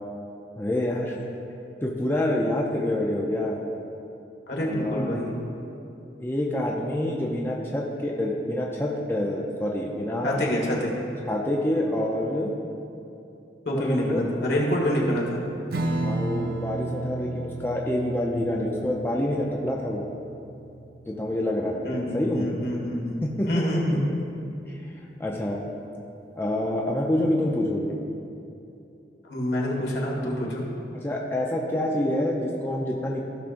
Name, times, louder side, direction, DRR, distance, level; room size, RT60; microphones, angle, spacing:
voice 1, 0.6-1.2 1.8-3.6 4.6-5.1 6.2-10.4 11.3-12.5 13.8-14.2 16.0-20.0 21.1-21.8 22.1-22.5 23.2-23.6 25.2-25.6 26.4-27.9 30.9-33.2, left 1 dB, 15° left, -2 dB, 0.6 m, -27 dB
voice 2, 4.5-5.3 10.2-11.0 13.7-15.4 21.8-24.1 29.3-30.6, equal, 70° left, -3 dB, 1.8 m, -26 dB
Strum, 15.7-22.6, right 2 dB, 60° right, 0.6 m, -34 dB
15.5 x 6.0 x 2.6 m, 2.7 s
head